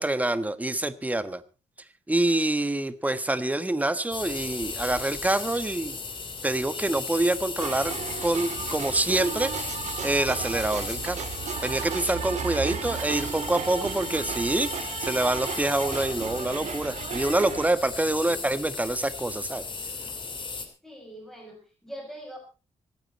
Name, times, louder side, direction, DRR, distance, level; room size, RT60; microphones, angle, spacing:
voice 1, 0.0-1.4 2.1-6.0 6.4-7.9 8.2-9.7 10.0-11.3 11.6-19.6, right 2 dB, 15° right, 13 dB, 1.3 m, -26 dB
sound 1, 4.1-20.7, left 4 dB, 45° left, 3.2 m, -36 dB
sound 2, 7.6-17.7, right 8 dB, 80° right, 2.2 m, -35 dB
voice 2, 18.1-18.6 20.8-22.4, equal, 5° left, 0 dB, 6.4 m, -44 dB
26.0 x 9.2 x 4.2 m, 0.33 s
cardioid pair, 100°, 12 cm